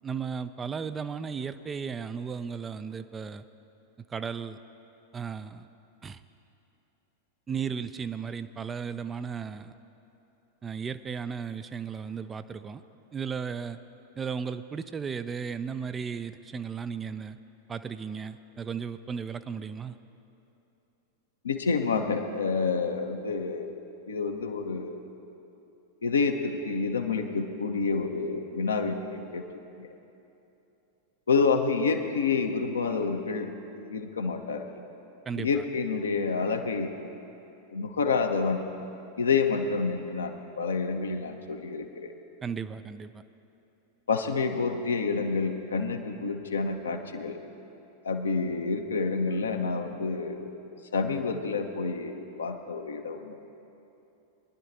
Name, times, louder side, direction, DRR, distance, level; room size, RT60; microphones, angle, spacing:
voice 1, 0.0-3.4 4.1-4.6 5.1-5.7 6.0-6.2 7.5-9.7 10.6-12.8 13.1-13.8 14.2-17.4 17.7-19.9 35.3-35.6 42.4-43.2, right 6 dB, 20° right, 12 dB, 0.4 m, -35 dB
voice 2, 21.4-23.8 24.1-25.0 26.0-29.4 29.8-29.9 31.3-33.5 33.9-34.6 35.4-36.9 37.7-38.6 39.2-42.1 44.1-47.4 48.0-50.6 50.9-53.4, left 4 dB, 70° left, 5 dB, 0.8 m, -28 dB
22.0 x 11.0 x 2.7 m, 2.9 s
figure-of-eight pair, 90°, 0 cm